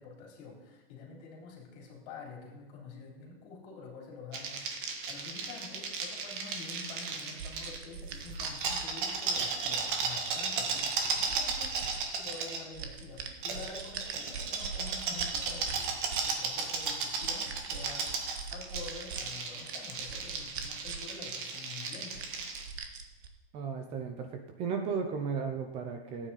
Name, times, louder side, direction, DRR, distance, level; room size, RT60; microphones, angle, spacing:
voice 1, 0.0-18.1 18.5-22.3, left 4 dB, 35° left, -1 dB, 3.6 m, -48 dB
sound 1, 4.3-7.8 8.2-12.6 13.4-22.7, right 4 dB, 55° right, 2.0 m, -35 dB
sound 2, 7.4-9.5 10.2-12.0 12.3-16.3 16.7-19.2 19.6-21.1 21.4-21.5 21.9-23.3, right 6 dB, 85° right, 1.7 m, -42 dB
voice 2, 23.5-26.3, right 6 dB, 20° right, 5 dB, 0.7 m, -35 dB
14.5 x 9.2 x 4.2 m, 1.1 s
supercardioid pair, 165°, 31 cm